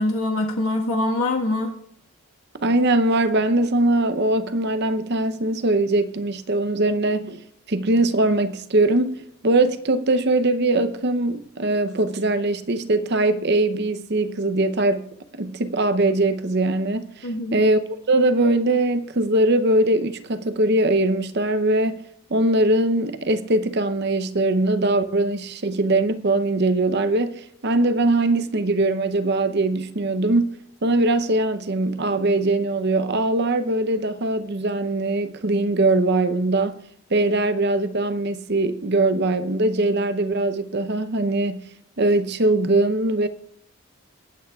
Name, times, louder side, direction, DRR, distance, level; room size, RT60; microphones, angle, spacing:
voice 1, 0.0-1.7 17.2-17.6, left 2 dB, 70° left, 1.5 m, -24 dB
voice 2, 2.6-7.4 7.7-15.1 15.3-17.8 18.1-22.0 22.3-36.8 37.1-41.7 42.0-43.3, right 2 dB, 50° right, 0.7 m, -21 dB
22.5 x 9.1 x 2.4 m
head